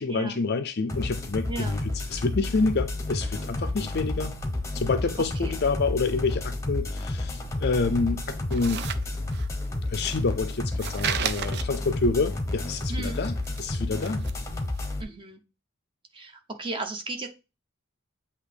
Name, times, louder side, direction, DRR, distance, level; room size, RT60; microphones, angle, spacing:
voice 1, 0.0-4.3 4.7-8.8 9.9-14.2, left 4 dB, 45° left, 0.5 m, -28 dB
sound 1, 0.9-15.0, left 2 dB, 15° left, 0.9 m, -31 dB
voice 2, 1.5-1.8 5.4-5.6 12.9-13.2 15.0-15.4 16.1-17.3, right 3 dB, 20° right, 0.9 m, -35 dB
sound 2, 8.5-9.7 9.9-12.1 12.4-13.8 14.0-14.5 14.7-14.8, right 8 dB, 50° right, 0.5 m, -33 dB
8.1 x 2.9 x 5.0 m
head